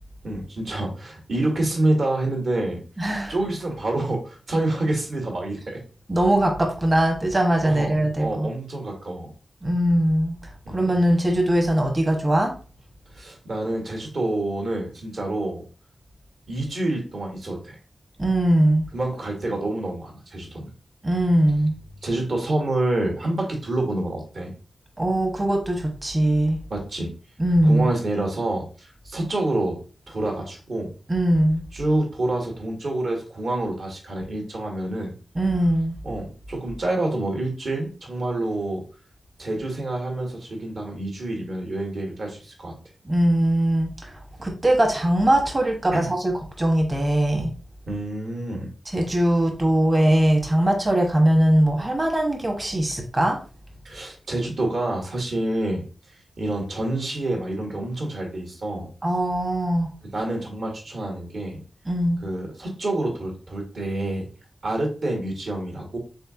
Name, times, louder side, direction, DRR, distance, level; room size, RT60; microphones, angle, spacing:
voice 1, 0.2-2.8 3.3-5.8 7.6-9.3 10.6-10.8 13.1-15.6 16.5-17.8 18.9-20.7 22.0-24.5 26.7-27.1 27.6-29.8 30.1-30.9 31.7-35.1 36.0-38.8 39.4-42.7 45.9-46.1 47.9-48.7 53.8-58.9 60.1-61.6 62.2-64.3 64.6-66.0, right 2 dB, 60° right, 1 dB, 1.4 m, -27 dB
voice 2, 3.0-3.3 6.1-8.5 9.6-10.4 10.7-12.5 18.2-18.8 21.0-21.7 25.0-26.6 27.4-27.9 31.1-31.7 35.3-36.0 43.0-47.5 48.9-53.4 59.0-59.9 61.9-62.2, right 1 dB, 30° right, 1 dB, 1.0 m, -21 dB
4.2 x 3.7 x 2.4 m, 0.36 s
wide cardioid pair, 115°, 0 cm